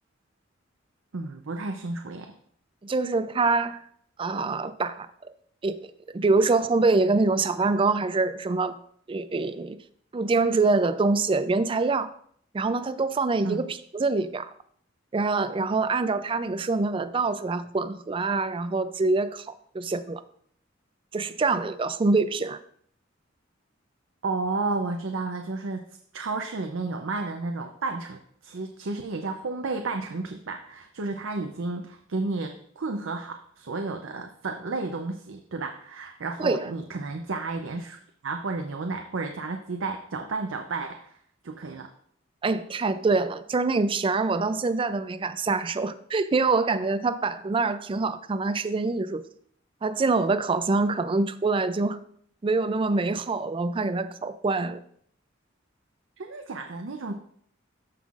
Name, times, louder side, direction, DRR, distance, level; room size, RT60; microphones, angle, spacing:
voice 1, 1.1-2.3 13.4-13.6 24.2-25.9 26.1-38.0 38.2-41.2 41.4-41.9 56.2-57.1, right 3 dB, 75° right, 4 dB, 0.6 m, -32 dB
voice 2, 2.8-3.8 4.2-5.1 5.6-5.8 6.1-8.8 9.1-9.8 10.1-12.1 12.5-14.5 15.1-19.5 19.7-20.2 21.1-22.6 36.4-36.7 42.4-49.2 49.8-52.0 52.4-54.8, right 3 dB, 25° right, 13 dB, 0.4 m, -25 dB
13.5 x 5.5 x 2.5 m, 0.63 s
head